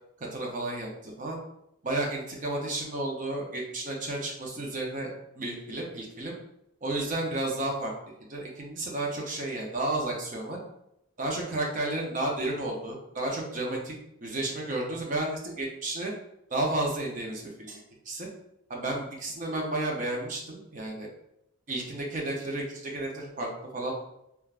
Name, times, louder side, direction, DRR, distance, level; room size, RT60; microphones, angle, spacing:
voice 1, 0.3-1.4 1.8-5.1 5.4-6.4 6.8-7.9 8.3-10.6 11.2-13.9 14.2-16.1 16.5-17.8 18.1-18.3 18.7-21.1 21.7-23.9, right 2 dB, 40° right, -1 dB, 0.6 m, -32 dB
3.3 x 2.3 x 2.4 m, 0.81 s
head